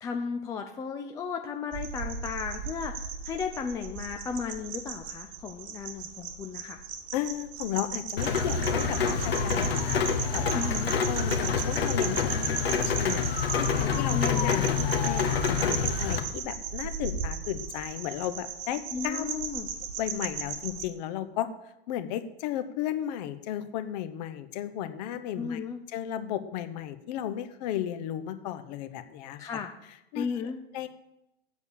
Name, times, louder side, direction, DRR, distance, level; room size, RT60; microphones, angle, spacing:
voice 1, 0.0-6.8 10.5-10.9 14.1-14.5 18.9-19.7 25.4-25.8 29.4-29.7 30.1-30.6, left 6 dB, 10° left, 4 dB, 0.4 m, -35 dB
sound 1, 1.7-20.9, right 7 dB, 35° right, 1.3 m, -37 dB
voice 2, 7.1-10.7 11.1-13.3 13.6-14.7 15.0-19.3 20.0-21.5 21.9-25.6 25.9-29.4 30.1-30.4 30.7-30.9, left 11 dB, 40° left, 11 dB, 0.9 m, -34 dB
Rain, 8.2-16.2, left 6 dB, 65° left, 1.2 m, -27 dB
8.1 x 6.8 x 7.2 m, 0.86 s
figure-of-eight pair, 95°, 32 cm